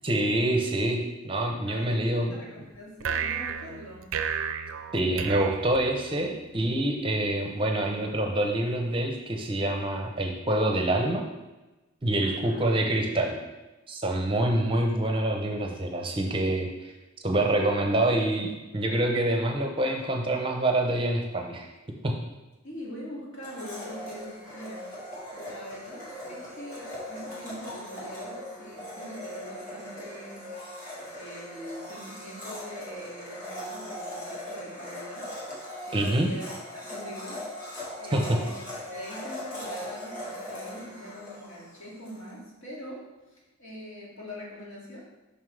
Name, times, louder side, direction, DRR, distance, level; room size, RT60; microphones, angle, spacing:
voice 1, 0.0-2.4 4.9-11.2 12.0-13.4 13.9-16.7 17.2-21.7 22.0-22.2 35.9-36.3 38.1-38.4, right 1 dB, 25° right, 2 dB, 0.7 m, -26 dB
voice 2, 1.7-4.1 12.2-12.6 22.6-25.0 25.3-30.5 31.1-35.3 35.9-36.4 36.7-37.7 38.0-38.6 38.9-43.0 43.3-45.0, equal, 65° left, -4 dB, 2.2 m, -43 dB
sound 1, 3.0-6.4, right 7 dB, 75° right, 0.5 m, -33 dB
Domestic sounds home sounds, 23.4-42.2, left 1 dB, 40° left, 1.9 m, -40 dB
7.5 x 5.5 x 3.3 m, 1.1 s
head